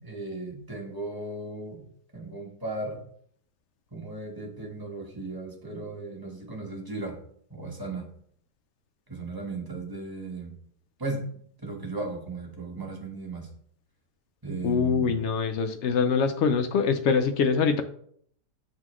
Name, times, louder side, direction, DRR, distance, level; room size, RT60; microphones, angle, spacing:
voice 1, 0.0-1.8 2.1-3.0 3.9-7.2 7.5-8.1 9.1-10.5 11.0-11.3 11.6-13.5 14.4-15.2, right 3 dB, 15° right, -1 dB, 1.2 m, -36 dB
voice 2, 14.6-17.8, left 5 dB, 85° left, 8 dB, 0.6 m, -24 dB
8.8 x 3.7 x 3.0 m, 0.63 s
omnidirectional pair, 1.8 m